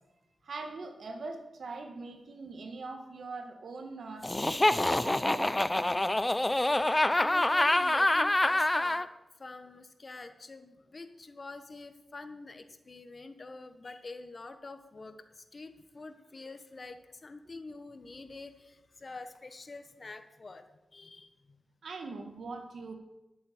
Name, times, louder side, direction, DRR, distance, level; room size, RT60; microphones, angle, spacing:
voice 1, 0.4-5.5 21.8-22.9, right 3 dB, 75° right, 5 dB, 1.8 m, -42 dB
Laughter, 4.2-9.1, left 1 dB, 20° left, 0.6 m, -26 dB
voice 2, 6.5-6.8 7.1-9.1 9.4-20.6 20.9-21.6, left 3 dB, 50° left, 9 dB, 1.3 m, -46 dB
11.0 x 8.2 x 7.4 m, 0.98 s
cardioid pair, 50°, 0 cm